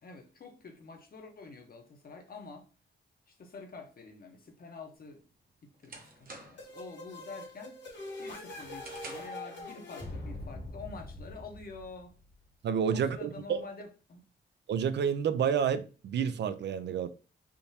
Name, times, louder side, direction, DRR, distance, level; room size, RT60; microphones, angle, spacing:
voice 1, 0.0-2.7 3.3-5.2 5.6-7.8 8.2-12.2 12.9-14.3, left 4 dB, 50° left, 0.9 m, -47 dB
sound 1, 5.0-6.8 7.2-7.6 8.0-9.5, right 2 dB, 50° right, 0.9 m, -49 dB
sound 2, 6.6-12.2, left 2 dB, 65° left, 1.6 m, -43 dB
voice 2, 12.6-13.6 14.7-17.1, right 7 dB, 65° right, 0.4 m, -29 dB
3.6 x 2.7 x 2.7 m
cardioid pair, 95°, 20 cm